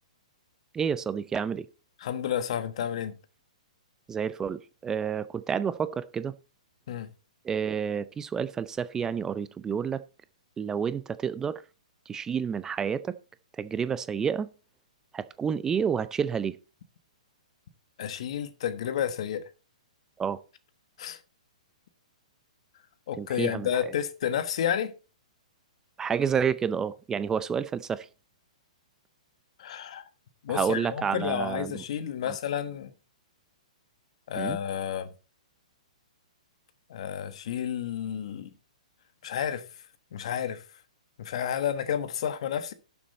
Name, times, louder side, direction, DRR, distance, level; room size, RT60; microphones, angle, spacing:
voice 1, 0.7-1.7 4.1-6.4 7.4-10.0 10.6-11.6 12.1-13.2 13.6-14.5 15.1-16.6 20.2-20.4 23.2-23.7 26.0-28.1 30.5-31.8 32.3-32.4 34.3-34.6, right 7 dB, 15° right, 0.5 m, -29 dB
voice 2, 2.0-3.2 6.9-7.1 18.0-19.5 21.0-21.2 23.1-24.9 29.6-30.0 30.4-32.9 34.3-35.1 36.9-38.5 39.2-39.6 40.1-40.6 41.2-42.7, left 9 dB, 60° left, 1.4 m, -31 dB
12.0 x 7.1 x 4.2 m
hypercardioid pair, 130°, 4 cm